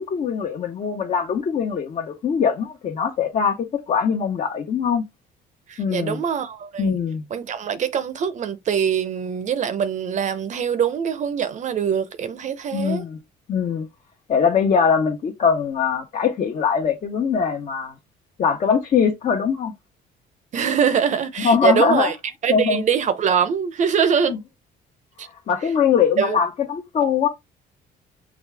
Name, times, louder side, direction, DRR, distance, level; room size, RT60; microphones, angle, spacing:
voice 1, 0.0-5.0 5.8-6.2 6.8-7.2 12.7-13.2 13.5-13.9 14.3-17.9 18.4-19.7 21.4-22.1 22.5-22.8 24.3-24.4 25.5-27.3, left 6 dB, 45° left, 1.0 m, -22 dB
voice 2, 5.7-7.0 7.3-13.0 20.5-22.1 22.4-24.4 25.2-25.3 26.2-26.4, right 7 dB, 45° right, 0.7 m, -23 dB
6.2 x 2.3 x 3.4 m
cardioid pair, 110°, 17 cm